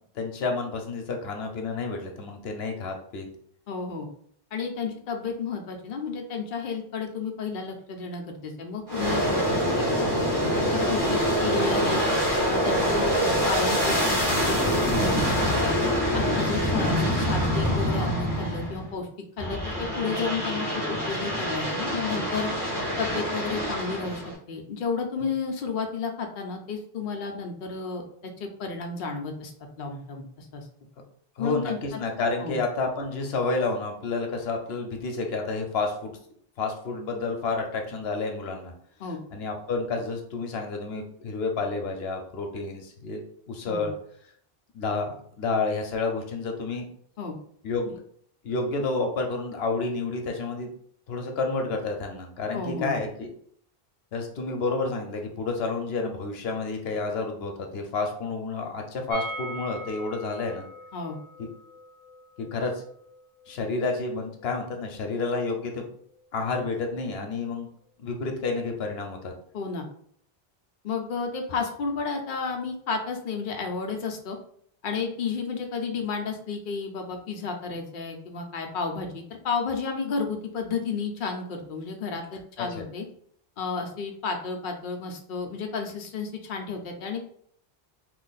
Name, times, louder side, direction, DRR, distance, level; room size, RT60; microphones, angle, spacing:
voice 1, 0.1-3.3 31.4-36.2 36.6-38.7 39.3-43.9 44.7-46.9 47.6-48.0 48.4-50.7 51.1-53.3 54.1-60.6 62.5-62.8 63.5-65.9 66.3-67.7 68.0-69.3 82.6-82.8, left 3 dB, 85° left, 3 dB, 0.9 m, -30 dB
voice 2, 3.7-4.1 4.5-12.0 12.5-15.8 16.1-19.1 19.4-22.5 23.0-29.5 29.8-30.7 31.4-32.0 32.4-32.6 39.0-39.2 43.7-43.9 47.2-47.4 47.9-48.0 52.5-52.9 60.9-61.2 69.5-69.9 70.8-74.4 74.8-83.0 83.6-87.3, left 5 dB, 60° left, 3 dB, 0.7 m, -32 dB
Aircraft, 8.9-18.9 19.4-24.3, equal, 25° right, 1.2 m, -25 dB
sound 1, 59.1-64.9 65.1-65.2 65.5-65.6, equal, 55° right, 1.0 m, -41 dB
2.9 x 2.5 x 3.9 m, 0.63 s
omnidirectional pair, 1.0 m